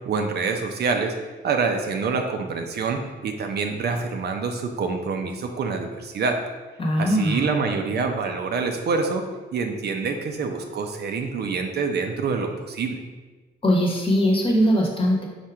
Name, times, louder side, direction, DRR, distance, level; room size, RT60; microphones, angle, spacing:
voice 1, 0.1-1.1 1.4-6.4 7.0-9.3 9.5-13.0, right 4 dB, 55° right, 4 dB, 0.5 m, -26 dB
voice 2, 6.8-7.4 13.6-15.2, equal, 25° left, -1 dB, 1.0 m, -20 dB
4.3 x 2.4 x 4.6 m, 1.3 s
cardioid pair, 90°, 20 cm